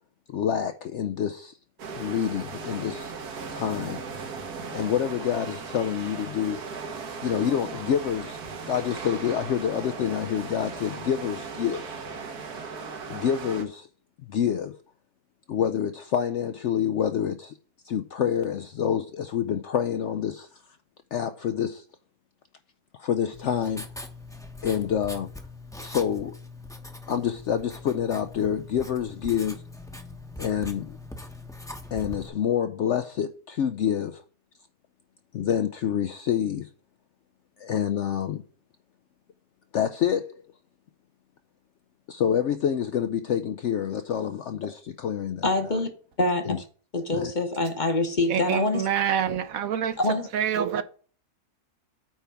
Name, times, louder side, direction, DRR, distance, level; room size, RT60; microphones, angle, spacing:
voice 1, 0.3-1.5 2.0-3.1 3.5-4.0 4.7-6.6 7.2-11.8 13.1-13.9 14.3-14.8 15.5-17.5 17.8-20.5 21.1-21.8 23.0-23.8 24.6-25.3 25.8-26.4 27.1-29.6 30.4-31.0 31.9-34.2 35.3-36.7 37.6-38.4 39.7-40.4 42.1-45.5 46.4-46.6 47.1-47.3, left 9 dB, 70° left, 0.7 m, -27 dB
sound 1, 1.8-13.6, right 5 dB, 85° right, 1.7 m, -37 dB
Writing, 23.3-32.3, left 2 dB, 5° left, 0.7 m, -42 dB
voice 2, 45.4-45.9 46.2-46.6 46.9-48.9 50.0-50.3, left 2 dB, 35° left, 0.9 m, -25 dB
voice 3, 48.3-50.0 50.3-50.8, right 8 dB, 70° right, 1.1 m, -26 dB
9.0 x 3.5 x 5.7 m
omnidirectional pair, 1.6 m